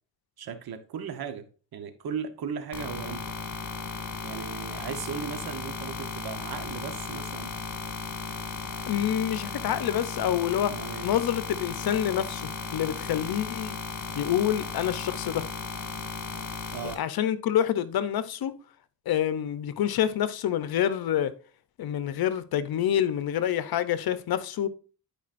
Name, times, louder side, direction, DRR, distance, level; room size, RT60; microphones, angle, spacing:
voice 1, 0.4-3.3 4.2-7.5 10.7-11.1 16.7-17.0, right 7 dB, 85° right, 1.1 m, -37 dB
sound 1, 2.7-16.9, left 4 dB, 50° left, 2.1 m, -36 dB
voice 2, 8.9-10.7 11.0-13.7 14.2-15.5 17.0-18.5 19.1-21.3 21.8-24.7, left 10 dB, 80° left, 0.8 m, -27 dB
11.5 x 5.1 x 2.6 m
cardioid pair, 90°, 36 cm